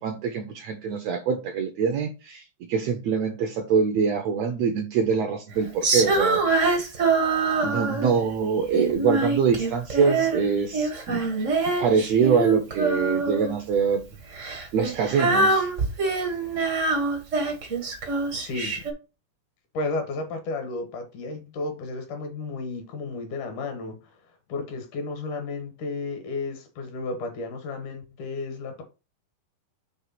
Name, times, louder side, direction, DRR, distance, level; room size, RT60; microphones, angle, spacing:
voice 1, 0.0-6.9 7.6-11.3 11.7-14.1 14.7-15.7, right 6 dB, 75° right, 1.6 m, -24 dB
Female singing, 5.8-8.2 8.7-10.4 10.7-13.6 14.3-18.9, right 3 dB, 55° right, 0.8 m, -24 dB
voice 2, 18.3-18.9 19.7-28.8, left 3 dB, 70° left, 2.8 m, -33 dB
6.1 x 3.3 x 5.8 m
omnidirectional pair, 3.8 m